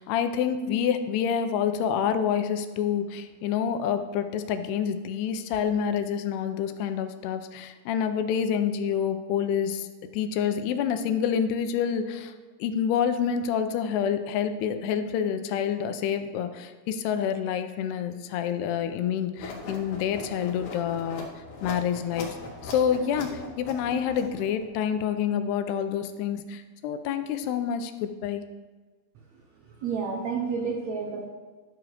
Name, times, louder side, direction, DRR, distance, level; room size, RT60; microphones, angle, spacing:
voice 1, 0.0-9.9 10.1-12.3 12.6-22.3 22.6-28.4, left 8 dB, 90° left, 9 dB, 2.7 m, -27 dB
sound 1, 19.4-24.6, left 3 dB, 60° left, 2.8 m, -40 dB
voice 2, 29.6-31.3, right 5 dB, 85° right, 1 dB, 1.5 m, -30 dB
12.0 x 4.9 x 6.6 m, 1.3 s
omnidirectional pair, 4.7 m